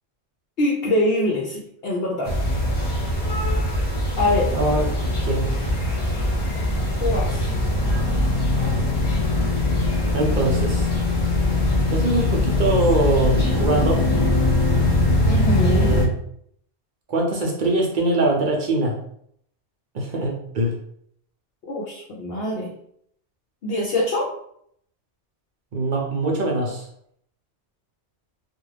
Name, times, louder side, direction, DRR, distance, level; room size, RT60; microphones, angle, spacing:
voice 1, 0.6-2.7 4.2-4.5 7.0-7.4 15.2-16.0 21.7-22.7 23.6-24.3, left 1 dB, 60° left, -4 dB, 0.8 m, -24 dB
sound 1, 2.2-16.0, left 2 dB, 40° left, 1.0 m, -21 dB
voice 2, 4.5-4.9 5.2-5.7 10.1-10.9 11.9-14.1 15.6-16.1 17.1-18.9 19.9-20.8 25.7-26.9, right 2 dB, 50° right, 0 dB, 0.7 m, -22 dB
2.4 x 2.4 x 3.2 m, 0.67 s
omnidirectional pair, 1.2 m